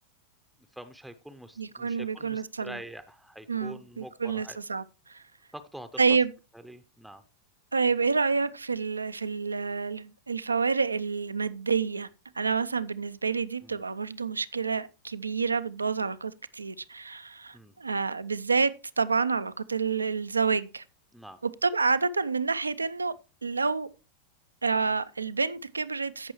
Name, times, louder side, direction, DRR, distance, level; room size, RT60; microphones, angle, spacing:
voice 1, 0.7-4.6 5.5-6.2 6.6-7.2 13.6-13.8 17.5-17.7 21.1-21.4, right 1 dB, ahead, 0.7 m, -45 dB
voice 2, 1.6-2.8 3.5-5.2 6.0-6.3 7.7-12.1 12.4-20.8 21.6-23.1 23.4-23.9 24.6-26.3, right 5 dB, 80° right, 0.5 m, -28 dB
16.0 x 6.1 x 3.0 m
figure-of-eight pair, 90°, 0 cm